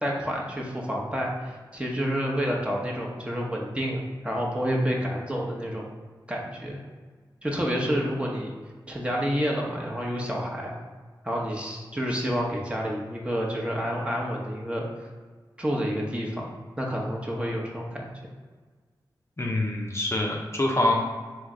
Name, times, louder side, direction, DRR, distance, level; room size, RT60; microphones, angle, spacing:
voice 1, 0.0-5.9 6.3-6.8 7.4-8.5 8.9-10.7 11.2-15.1 15.6-16.5 16.8-18.1, equal, 15° right, -2 dB, 0.9 m, -29 dB
voice 2, 19.4-20.9, left 1 dB, 30° left, -1 dB, 0.7 m, -25 dB
3.2 x 3.1 x 3.8 m, 1.4 s
cardioid pair, 40°, 9 cm